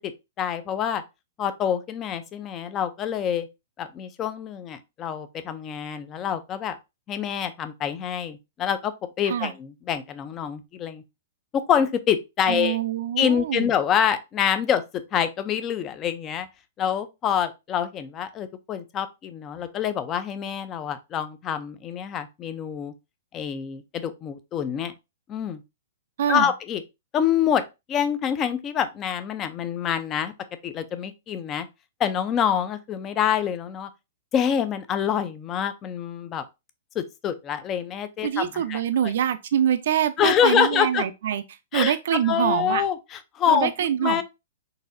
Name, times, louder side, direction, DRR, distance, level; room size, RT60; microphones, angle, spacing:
voice 1, 0.4-1.0 1.4-3.5 3.8-6.8 7.1-8.9 9.2-11.0 11.5-12.8 13.2-16.5 16.8-22.9 23.3-24.9 25.3-25.6 26.3-26.8 27.1-27.6 27.9-30.3 30.6-31.7 32.0-33.9 34.3-36.4 36.9-39.1 40.2-41.0 41.7-41.9 42.2-44.2, left 8 dB, 20° left, 0.4 m, -26 dB
voice 2, 12.5-13.7 26.2-26.5 38.2-41.4 41.7-42.8 43.5-44.2, right 9 dB, 60° right, 0.3 m, -25 dB
4.0 x 2.6 x 2.5 m
hypercardioid pair, 160°, 0 cm